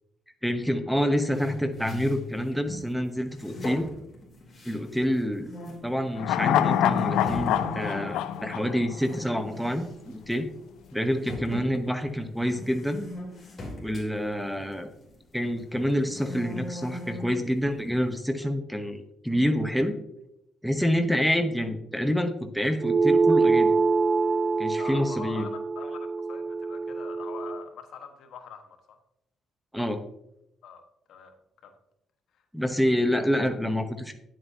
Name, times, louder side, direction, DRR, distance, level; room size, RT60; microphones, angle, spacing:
voice 1, 0.4-3.9 4.7-5.5 5.8-10.5 10.9-13.0 13.8-14.9 15.3-20.0 20.6-23.8 24.6-25.5 29.7-30.0 32.5-34.1, equal, ahead, 8 dB, 0.9 m, -27 dB
sound 1, 1.3-2.9 3.3-5.1 5.4-5.9 6.5-6.6 7.0-9.3 9.6-9.9 10.3-10.4 11.3-15.3 15.7-17.4, left 1 dB, 30° left, 2.7 m, -39 dB
sound 2, 6.2-9.6 9.9-10.0, left 10 dB, 90° left, 0.4 m, -26 dB
sound 3, 22.8-27.6, right 4 dB, 50° right, 0.5 m, -25 dB
voice 2, 24.8-29.0 30.6-31.3 31.6-31.7 32.3-32.4, left 7 dB, 75° left, 6 dB, 1.2 m, -44 dB
9.5 x 7.8 x 2.7 m, 0.79 s
cardioid pair, 90°, 0 cm